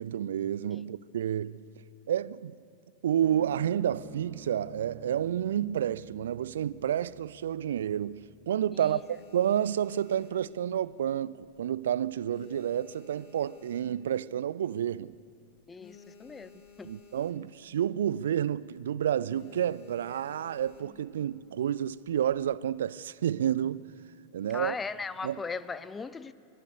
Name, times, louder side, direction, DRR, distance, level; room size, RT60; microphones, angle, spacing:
voice 1, 0.0-1.6 2.1-2.6 3.0-15.1 16.8-23.9 24.3-24.8 25.2-25.4, right 10 dB, 60° right, 0.4 m, -30 dB
sound 1, 3.2-9.9, right 5 dB, 20° right, 1.4 m, -52 dB
sound 2, 7.5-8.2 8.6-11.1 11.4-11.8 12.1-14.3 14.8-14.9 15.1-15.2 15.5-17.7 18.0-18.3 18.6-18.8 19.3-21.1 21.8-22.4, left 6 dB, 40° left, 2.7 m, -55 dB
voice 2, 15.7-16.5 16.8-16.9 24.5-26.3, left 4 dB, 15° left, 0.6 m, -38 dB
25.0 x 19.0 x 6.7 m
figure-of-eight pair, 90°, 0 cm